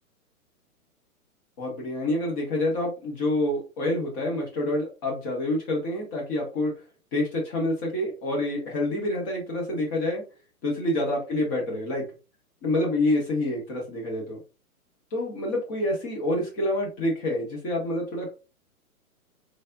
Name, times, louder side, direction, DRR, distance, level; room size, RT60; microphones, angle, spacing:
voice 1, 1.6-6.7 7.1-10.2 10.6-12.0 12.6-14.4 15.1-18.3, left 1 dB, 15° left, -1 dB, 0.6 m, -27 dB
3.3 x 2.3 x 2.3 m, 0.31 s
figure-of-eight pair, 115°, 45 cm